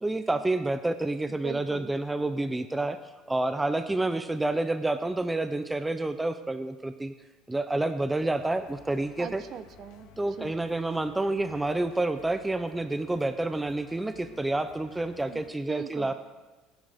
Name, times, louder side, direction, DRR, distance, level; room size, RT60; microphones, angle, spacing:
voice 1, 0.0-3.0 3.3-7.1 7.5-9.4 10.2-16.1, right 2 dB, 10° right, 10 dB, 0.5 m, -29 dB
voice 2, 1.3-1.9 9.2-10.1 10.4-10.5 15.3-15.4 15.7-16.1, right 8 dB, 45° right, 12 dB, 0.8 m, -40 dB
sound 1, 8.1-15.5, left 6 dB, 85° left, 1.6 m, -55 dB
19.5 x 10.0 x 3.5 m, 1.2 s
cardioid pair, 135°, 0 cm